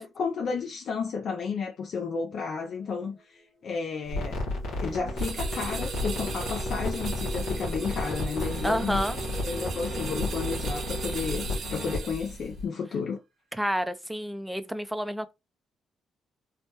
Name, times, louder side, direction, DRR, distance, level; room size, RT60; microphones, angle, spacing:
voice 1, 0.0-4.4 4.8-9.0 9.4-13.2, left 5 dB, 60° left, 0.4 m, -32 dB
sound 1, 2.6-3.6 4.2-11.6, right 1 dB, 25° left, 0.9 m, -42 dB
sound 2, 4.1-12.7, left 1 dB, 90° left, 1.1 m, -33 dB
sound 3, 5.2-12.5, right 6 dB, 60° right, 0.7 m, -40 dB
voice 2, 8.6-9.2 13.6-15.3, equal, 5° right, 0.4 m, -29 dB
3.2 x 2.1 x 2.8 m
cardioid pair, 90°, 0 cm